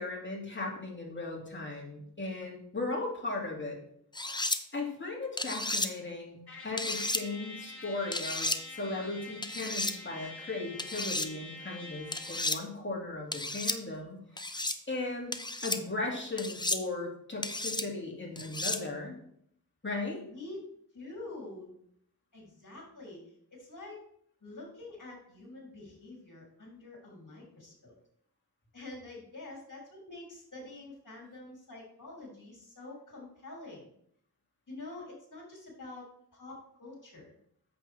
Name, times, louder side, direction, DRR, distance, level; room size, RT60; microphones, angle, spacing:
voice 1, 0.0-3.8 4.7-6.4 6.6-14.6 14.9-15.3 15.6-19.2 19.8-20.2, left 2 dB, 30° left, -2 dB, 2.7 m, -37 dB
sound 1, 4.1-4.6 5.4-5.9 6.8-7.2 8.1-8.6 9.4-9.9 10.8-11.3 12.1-12.6 13.3-13.8 14.4-14.8 15.3-15.8 16.4-16.8 17.4-17.9 18.4-18.8, left 2 dB, 10° left, 0.6 m, -33 dB
Trumpet, 6.5-12.6, left 3 dB, 70° left, 2.4 m, -46 dB
voice 2, 20.3-21.7 22.3-24.1 24.4-28.0 28.7-33.9 34.7-36.1 36.3-37.3, left 2 dB, 50° left, -2 dB, 3.7 m, -47 dB
8.6 x 7.3 x 3.6 m, 0.69 s
wide cardioid pair, 60°, 39 cm